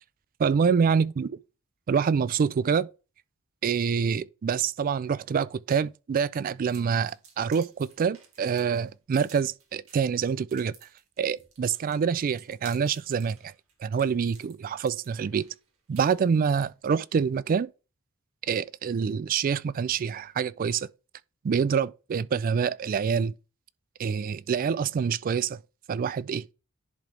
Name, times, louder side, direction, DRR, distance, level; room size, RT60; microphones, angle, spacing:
voice 1, 0.4-1.3 1.9-2.9 3.6-10.7 11.2-13.5 13.8-15.5 15.9-17.7 18.4-20.9 21.4-23.3 24.0-25.6 25.9-26.4, right 6 dB, 40° right, 0.3 m, -26 dB
sound 1, 6.6-16.7, right 6 dB, 80° right, 2.4 m, -54 dB
10.5 x 3.8 x 3.3 m
head